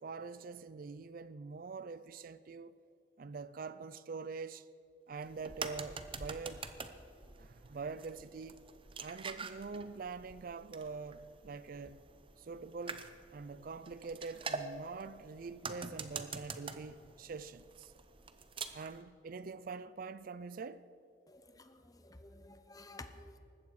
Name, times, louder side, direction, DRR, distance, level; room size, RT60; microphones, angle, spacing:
voice 1, 0.0-2.8 3.2-4.7 5.1-6.7 7.4-8.6 9.0-12.0 12.4-17.9 18.7-20.9, right 4 dB, 50° right, 0.4 m, -45 dB
sound 1, 5.2-19.0, right 4 dB, 30° right, 0.8 m, -46 dB
voice 2, 21.3-21.8 22.0-23.4, left 2 dB, 20° left, 1.0 m, -52 dB
19.5 x 15.0 x 4.8 m
head